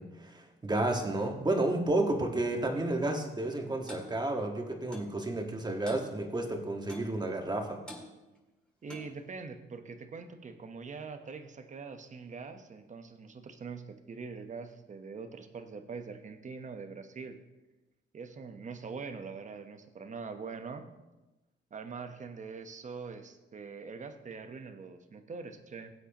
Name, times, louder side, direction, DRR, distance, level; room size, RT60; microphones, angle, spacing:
voice 1, 0.0-7.8, right 2 dB, 20° right, 3 dB, 1.6 m, -31 dB
Clock, 3.9-4.1 4.9-5.1 5.9-6.1 6.9-7.1 7.9-8.1 8.9-9.2, left 1 dB, 5° left, 2.3 m, -45 dB
voice 2, 8.8-17.4 18.1-20.9 21.7-25.9, right 5 dB, 40° right, 8 dB, 1.1 m, -43 dB
17.0 x 7.9 x 3.0 m, 1.1 s
cardioid pair, 90°, 20 cm